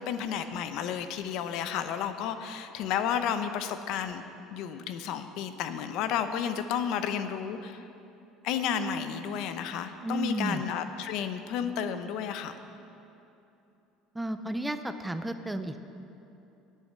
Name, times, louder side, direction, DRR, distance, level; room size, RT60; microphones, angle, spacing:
voice 1, 0.0-4.2 4.5-7.8 8.4-12.6, left 8 dB, 60° left, 10 dB, 0.7 m, -32 dB
voice 2, 10.0-10.6 14.1-15.8, right 1 dB, 5° right, 9 dB, 0.4 m, -32 dB
10.5 x 9.2 x 6.6 m, 2.8 s
cardioid pair, 150°, 0 cm